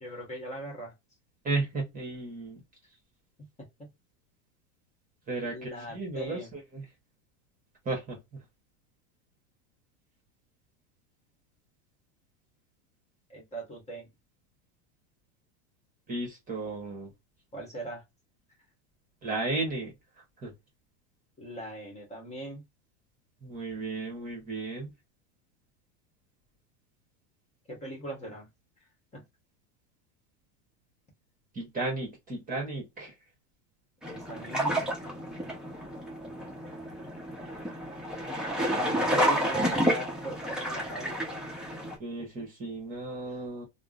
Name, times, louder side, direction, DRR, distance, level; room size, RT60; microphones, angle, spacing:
voice 1, 0.0-0.9 3.8-3.9 5.4-6.5 13.3-14.1 17.5-18.0 21.4-22.6 27.7-28.5 29.1-29.2 34.0-34.9 38.7-41.2 43.3-43.4, right 1 dB, 20° left, 1.2 m, -39 dB
voice 2, 1.4-2.6 5.3-6.8 7.8-8.4 16.1-17.1 19.2-19.9 20.4-20.5 23.4-24.9 31.5-33.1 39.1-39.5 42.0-43.7, right 3 dB, 25° right, 1.2 m, -34 dB
sound 1, 34.0-42.0, equal, ahead, 0.8 m, -30 dB
3.5 x 2.1 x 2.4 m
supercardioid pair, 125°, 36 cm